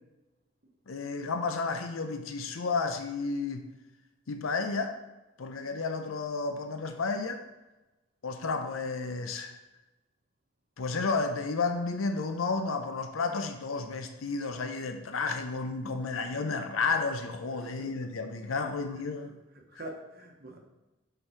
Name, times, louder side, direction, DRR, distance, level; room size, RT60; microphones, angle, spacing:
voice 1, 0.9-3.7 4.3-5.0 5.4-7.4 8.2-9.5 10.8-19.3, left 4 dB, 90° left, 6 dB, 0.6 m, -32 dB
voice 2, 17.6-18.0 18.4-18.6 18.9-19.1 19.5-20.6, right 1 dB, 50° right, 1 dB, 0.9 m, -45 dB
6.7 x 3.9 x 4.5 m, 1.0 s
head